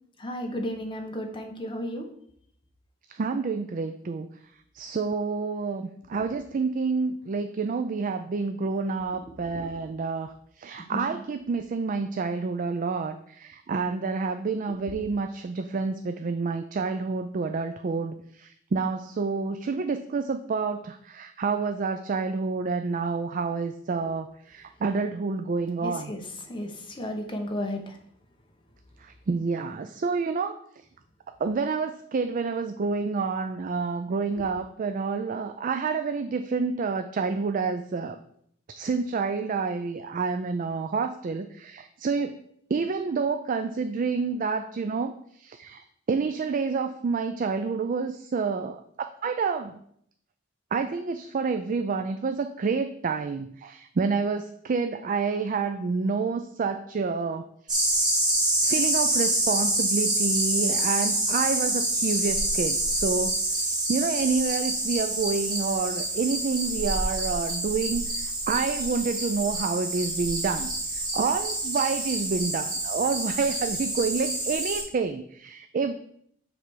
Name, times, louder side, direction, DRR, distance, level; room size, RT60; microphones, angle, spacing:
voice 1, 0.2-2.0 9.2-9.7 10.9-11.1 14.7-14.8 25.8-26.2 26.5-28.0, left 1 dB, 25° left, 3 dB, 1.0 m, -34 dB
voice 2, 3.1-4.3 4.7-26.1 29.0-30.6 31.4-38.2 38.8-42.4 42.7-49.8 50.7-57.9 58.6-76.0, right 4 dB, 45° right, 8 dB, 0.4 m, -28 dB
sound 1, 57.7-74.8, right 1 dB, 20° right, 1.8 m, -27 dB
7.4 x 3.4 x 6.1 m, 0.67 s
head